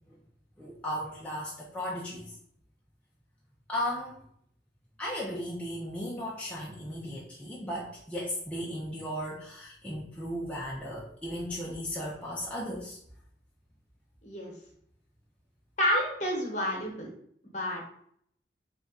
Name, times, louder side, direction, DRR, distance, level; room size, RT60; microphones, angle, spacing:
voice 1, 0.6-2.3 3.7-4.3 5.0-13.0, equal, 5° left, -5 dB, 0.5 m, -36 dB
voice 2, 15.8-17.1 17.4-17.8, equal, 40° left, -1 dB, 1.0 m, -29 dB
3.5 x 2.4 x 4.0 m, 0.67 s
head